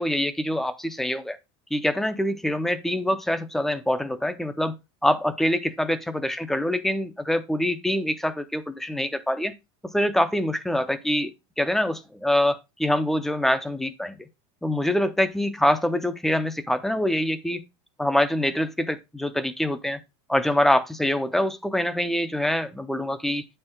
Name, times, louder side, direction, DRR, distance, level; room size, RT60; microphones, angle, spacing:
voice 1, 0.0-1.4 1.7-4.7 5.0-9.5 9.9-14.2 14.6-17.6 18.0-20.0 20.3-23.5, left 1 dB, ahead, 0.4 m, -25 dB
8.5 x 4.4 x 3.6 m
supercardioid pair, 170°, 15 cm